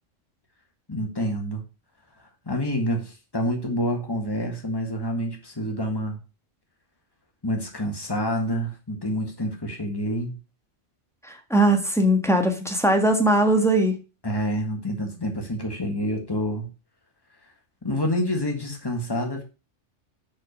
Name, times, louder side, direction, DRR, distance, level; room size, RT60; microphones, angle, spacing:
voice 1, 0.9-1.6 2.5-6.2 7.4-10.4 14.2-16.7 17.8-19.4, equal, 20° left, 1.8 m, -27 dB
voice 2, 11.2-14.0, right 1 dB, ahead, 1.5 m, -20 dB
6.2 x 5.2 x 6.7 m
omnidirectional pair, 1.2 m